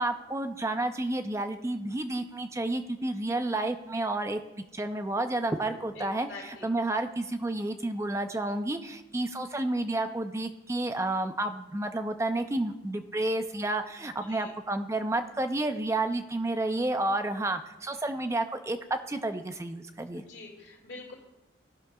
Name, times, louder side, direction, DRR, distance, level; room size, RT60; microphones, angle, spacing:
voice 1, 0.0-4.4 4.7-20.2, right 2 dB, 15° right, 8 dB, 0.4 m, -30 dB
voice 2, 5.9-6.7 14.0-14.5 20.2-21.1, left 3 dB, 65° left, -3 dB, 2.1 m, -45 dB
18.0 x 6.0 x 2.3 m, 0.98 s
head